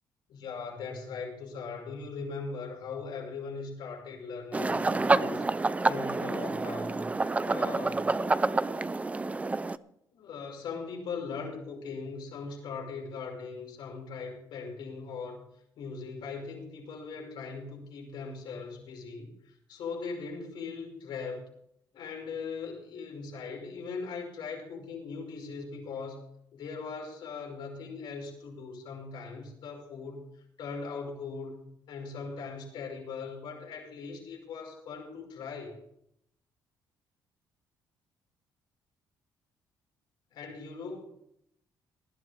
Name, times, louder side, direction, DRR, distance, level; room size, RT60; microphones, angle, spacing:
voice 1, 0.3-5.4 5.8-7.1 7.4-8.1 10.1-15.5 15.8-21.5 21.9-26.3 26.5-35.8 40.3-41.1, left 4 dB, 75° left, 0 dB, 5.6 m, -40 dB
sound 1, 4.5-9.8, right 3 dB, 20° right, 0.5 m, -28 dB
19.5 x 12.0 x 3.5 m, 0.74 s
cardioid pair, 100°, 8 cm